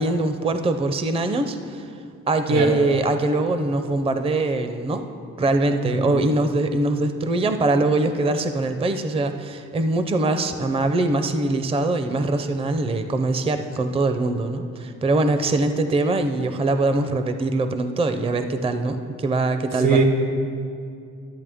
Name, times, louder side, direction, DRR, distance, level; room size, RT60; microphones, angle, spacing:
voice 1, 0.0-1.9 2.3-5.1 5.4-20.0, right 2 dB, 20° right, 8 dB, 0.5 m, -22 dB
voice 2, 5.8-6.2 19.8-20.0, right 4 dB, 85° right, 3 dB, 1.4 m, -21 dB
12.5 x 8.4 x 3.5 m, 2.5 s
cardioid pair, 90°, 30 cm